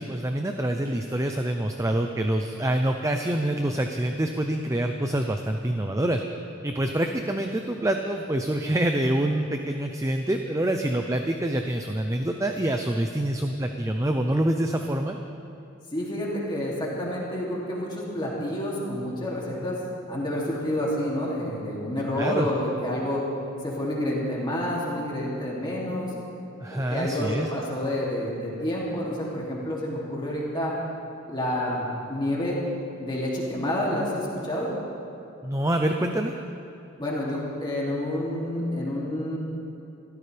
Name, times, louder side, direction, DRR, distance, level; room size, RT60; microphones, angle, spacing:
voice 1, 0.0-6.2 6.6-15.2 22.2-22.5 26.6-27.5 35.4-36.3, right 1 dB, 15° right, 4 dB, 0.6 m, -26 dB
voice 2, 15.9-19.8 20.1-23.2 23.6-26.1 26.7-30.8 31.3-32.6 33.0-34.7 37.0-39.4, left 1 dB, 20° left, -5 dB, 2.7 m, -29 dB
25.5 x 15.5 x 3.4 m, 2.9 s
head